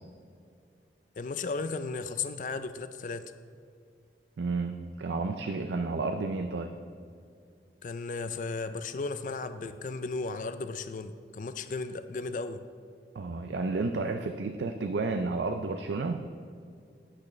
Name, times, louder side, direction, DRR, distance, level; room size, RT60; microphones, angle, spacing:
voice 1, 1.2-3.3 7.8-12.6, left 4 dB, 45° left, 11 dB, 0.4 m, -35 dB
voice 2, 4.4-6.8 13.1-16.3, right 3 dB, 80° right, 7 dB, 0.4 m, -31 dB
10.5 x 8.3 x 3.2 m, 2.3 s
head